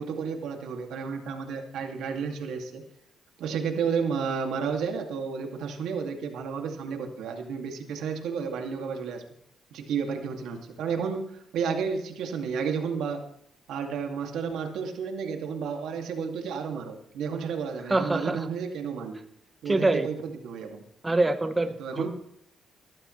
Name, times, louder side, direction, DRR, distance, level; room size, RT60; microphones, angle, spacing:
voice 1, 0.0-2.8 3.4-9.2 9.7-13.3 13.7-19.2 19.6-20.8 21.8-22.1, right 6 dB, 80° right, 3 dB, 2.5 m, -32 dB
voice 2, 17.9-18.5 19.7-20.1 21.0-22.1, right 2 dB, 20° right, 8 dB, 1.1 m, -25 dB
18.5 x 13.5 x 3.3 m, 0.72 s
cardioid pair, 90°, 0 cm